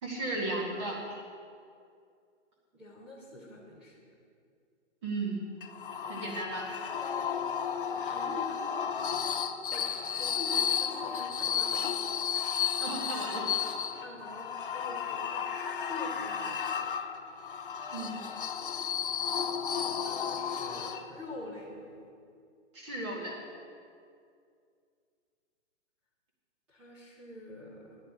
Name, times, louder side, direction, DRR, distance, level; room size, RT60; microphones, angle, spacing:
voice 1, 0.0-1.0 5.0-5.5 6.1-6.7 9.7-9.8 12.8-13.5 17.9-18.1 22.7-23.4, right 2 dB, 25° right, -3 dB, 2.0 m, -35 dB
voice 2, 2.7-4.0 7.0-7.3 7.9-8.8 9.7-9.9 10.2-12.0 12.7-12.9 14.0-15.3 15.7-16.9 17.9-18.2 18.6-18.8 19.9-21.9 26.7-28.0, left 2 dB, 5° right, -7 dB, 0.6 m, -45 dB
sound 1, 5.6-21.3, left 7 dB, 45° left, 0.5 m, -33 dB
12.5 x 10.5 x 4.8 m, 2.3 s
hypercardioid pair, 170°, 37 cm